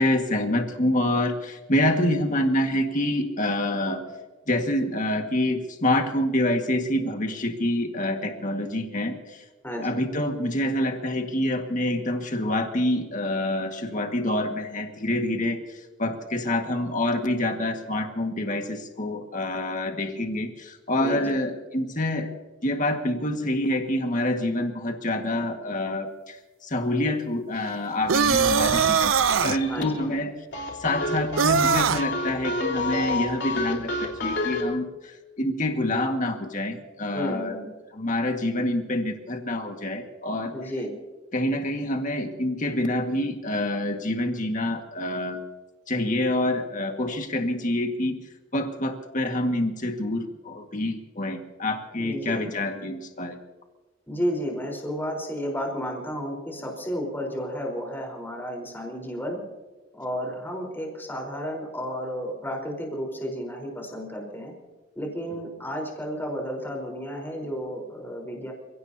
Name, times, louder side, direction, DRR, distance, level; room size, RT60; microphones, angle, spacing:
voice 1, 0.0-4.0 4.5-9.4 9.8-22.3 22.6-26.4 26.6-29.2 29.4-30.3 30.8-37.6 37.9-40.5 41.3-45.4 45.9-48.2 48.5-53.4, left 1 dB, 40° left, 4 dB, 1.8 m, -27 dB
voice 2, 9.6-10.0 21.0-21.4 29.7-30.2 37.1-37.7 40.5-40.9 52.0-52.4 54.1-59.4 59.9-64.5 65.0-68.5, equal, 10° left, 1 dB, 4.3 m, -32 dB
sound 1, 28.0-30.1 30.5-34.6, left 2 dB, 60° left, 3.5 m, -30 dB
sound 2, 28.1-29.6 31.4-32.0, right 6 dB, 90° right, 0.6 m, -21 dB
30.0 x 17.0 x 2.8 m, 1.2 s
head